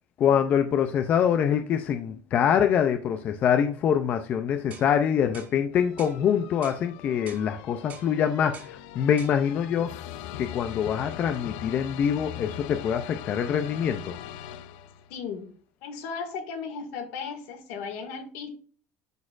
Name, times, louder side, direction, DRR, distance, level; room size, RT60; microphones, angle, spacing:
voice 1, 0.2-9.9 10.4-14.2, left 8 dB, 30° left, 7 dB, 0.4 m, -25 dB
sound 1, 4.7-4.9 5.3-5.6 6.0-6.2 6.6-6.8 7.3-7.5 7.9-8.1 8.5-8.7 9.2-9.4, right 6 dB, 30° right, 1.0 m, -45 dB
sound 2, 5.7-15.2, left 11 dB, 85° left, 0.5 m, -41 dB
voice 2, 15.1-15.5 15.8-18.5, left 5 dB, 70° left, 4 dB, 2.0 m, -36 dB
11.5 x 4.3 x 2.4 m, 0.43 s
cardioid pair, 180°, 5 cm